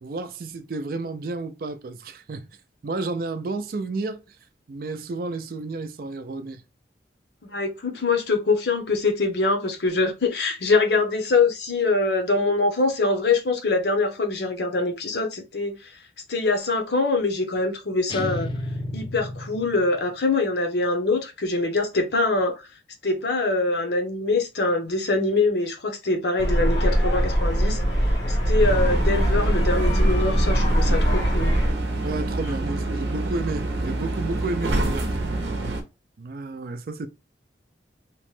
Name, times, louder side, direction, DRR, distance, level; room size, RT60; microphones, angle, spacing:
voice 1, 0.0-2.5 2.8-4.4 4.7-6.6 30.8-31.1 32.0-35.1 36.2-37.1, right 3 dB, 55° right, 0.4 m, -31 dB
voice 2, 7.4-15.9 16.3-18.5 18.9-22.7 23.0-27.8 28.3-31.5, left 3 dB, 65° left, 0.7 m, -24 dB
sound 1, 18.1-20.1, left 2 dB, 30° left, 0.4 m, -32 dB
sound 2, 26.4-31.7, equal, 90° left, 1.0 m, -21 dB
sound 3, 28.6-35.8, right 2 dB, 85° right, 0.7 m, -27 dB
2.9 x 2.1 x 3.0 m
head